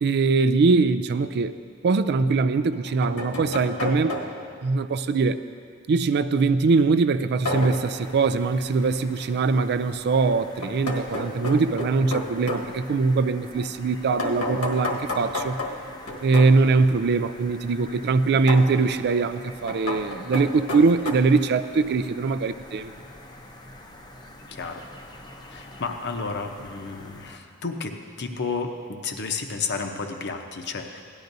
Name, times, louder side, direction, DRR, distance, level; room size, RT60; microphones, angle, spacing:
voice 1, 0.0-1.6 1.8-4.2 4.6-5.4 5.9-15.6 16.2-22.9, right 4 dB, 50° right, 12 dB, 0.4 m, -22 dB
sound 1, 1.3-1.4 2.6-4.6 7.5-7.9 10.6-12.7 14.2-16.6 18.5-18.7 19.7-21.1, left 1 dB, 85° left, 1.5 m, -31 dB
sound 2, 7.5-27.4, left 1 dB, 20° left, 0.7 m, -46 dB
voice 2, 24.5-24.8 25.5-31.0, left 4 dB, 50° left, 4 dB, 0.8 m, -32 dB
17.0 x 12.0 x 2.7 m, 2.3 s
head